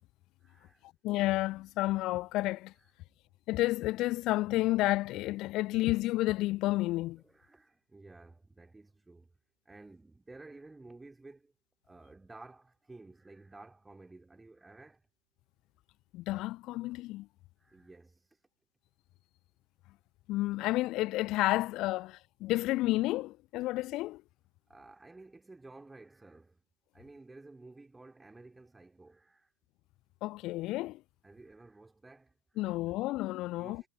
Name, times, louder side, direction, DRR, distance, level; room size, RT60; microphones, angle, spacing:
voice 1, 0.4-0.9 7.2-9.3 9.7-11.5 11.8-15.1 17.6-18.3 24.7-26.6 26.9-29.5 31.2-32.8 33.5-33.9, right 2 dB, 10° right, 2.4 m, -53 dB
voice 2, 1.0-2.7 3.5-7.2 16.1-17.3 20.3-24.2 30.2-31.0 32.6-33.8, left 18 dB, 40° left, 0.3 m, -31 dB
figure-of-eight pair, 90°, 0 cm